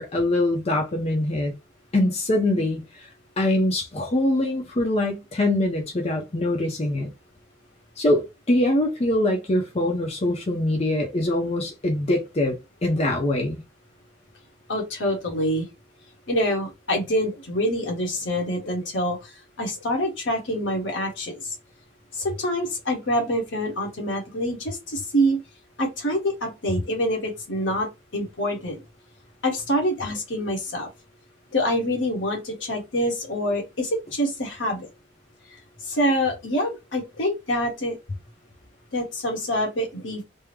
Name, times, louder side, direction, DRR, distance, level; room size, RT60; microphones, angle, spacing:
voice 1, 0.0-1.5 1.9-3.1 3.4-7.1 8.0-12.6 12.8-13.6, left 1 dB, 35° left, 0.6 m, -23 dB
voice 2, 14.7-15.7 16.3-21.6 22.1-25.4 25.8-28.8 29.4-30.9 31.5-34.9 35.8-38.0 38.9-40.2, equal, 80° left, 1.2 m, -26 dB
3.5 x 2.0 x 3.1 m
head